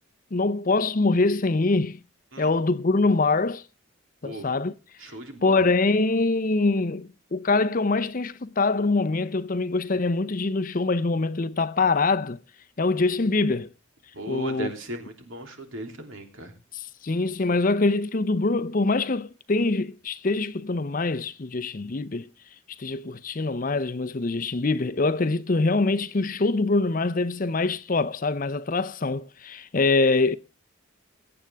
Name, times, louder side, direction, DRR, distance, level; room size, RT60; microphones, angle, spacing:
voice 1, 0.3-2.0 2.4-3.6 4.2-4.7 5.4-12.4 12.8-13.7 14.3-14.7 16.7-22.3 22.8-30.4, left 3 dB, 40° left, 0.6 m, -24 dB
voice 2, 5.0-5.6 14.1-16.5, right 1 dB, 75° right, 3.1 m, -37 dB
21.5 x 8.8 x 3.4 m
head